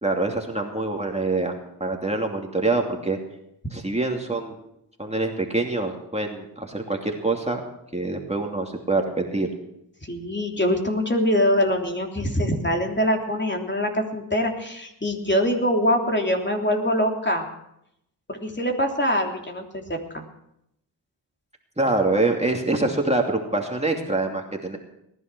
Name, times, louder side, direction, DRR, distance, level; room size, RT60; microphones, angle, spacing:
voice 1, 0.0-1.5 1.8-3.2 3.7-4.6 5.0-7.6 7.9-9.5 21.8-24.8, right 2 dB, 15° right, 1 dB, 2.7 m, -25 dB
voice 2, 10.0-17.5 18.3-20.2, equal, 25° left, 2 dB, 3.2 m, -24 dB
19.5 x 11.0 x 6.2 m, 0.78 s
cardioid pair, 45°, 43 cm